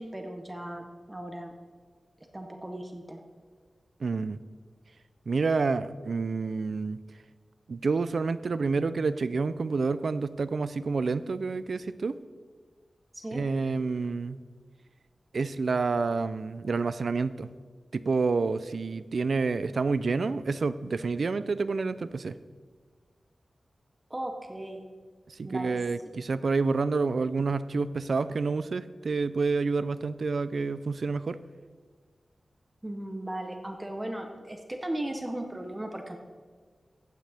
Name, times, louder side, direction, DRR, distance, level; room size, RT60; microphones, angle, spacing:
voice 1, 0.0-1.5 2.3-3.2 13.1-13.4 24.1-24.9 25.4-25.8 32.8-36.2, right 1 dB, 15° right, 4 dB, 0.9 m, -37 dB
voice 2, 4.0-4.4 5.3-7.0 7.7-12.2 13.3-14.4 15.3-17.5 17.9-22.3 25.4-31.4, right 4 dB, 65° right, 14 dB, 0.4 m, -28 dB
15.0 x 9.1 x 3.5 m, 1.5 s
wide cardioid pair, 110°, 0 cm